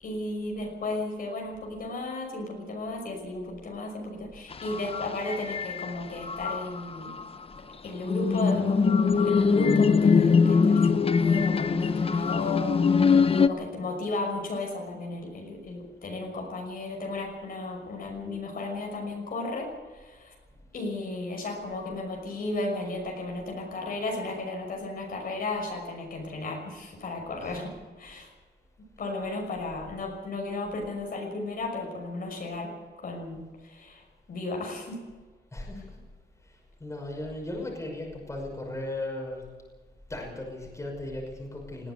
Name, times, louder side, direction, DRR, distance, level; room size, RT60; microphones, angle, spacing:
voice 1, 0.0-7.1 7.8-12.8 13.4-20.3 20.7-28.3 29.0-32.7 33.0-33.4 33.6-34.0 34.3-35.0, left 2 dB, 55° left, 1 dB, 5.9 m, -34 dB
sound 1, 4.5-6.0 6.2-7.2 8.1-13.5, left 5 dB, 35° left, 0.8 m, -23 dB
voice 2, 35.5-36.0 36.8-39.4 40.1-41.9, left 1 dB, 15° left, 0 dB, 5.9 m, -36 dB
20.0 x 16.0 x 8.3 m, 1.4 s
wide cardioid pair, 155°, 18 cm